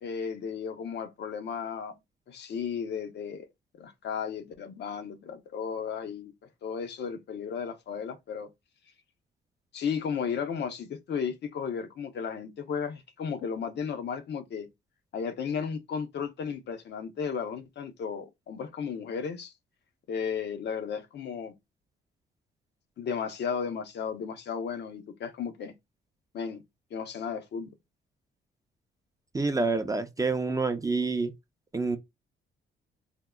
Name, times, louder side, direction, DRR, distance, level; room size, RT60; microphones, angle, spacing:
voice 1, 0.0-1.9 2.3-3.5 3.7-6.3 6.6-8.5 9.7-14.7 15.1-19.5 20.1-21.5 23.0-25.7 26.3-26.6 26.9-27.7, left 6 dB, 60° left, 0.6 m, -34 dB
voice 2, 29.3-31.3 31.7-32.0, right 3 dB, 15° right, 0.4 m, -27 dB
3.5 x 2.0 x 2.2 m
cardioid pair, 90°, 20 cm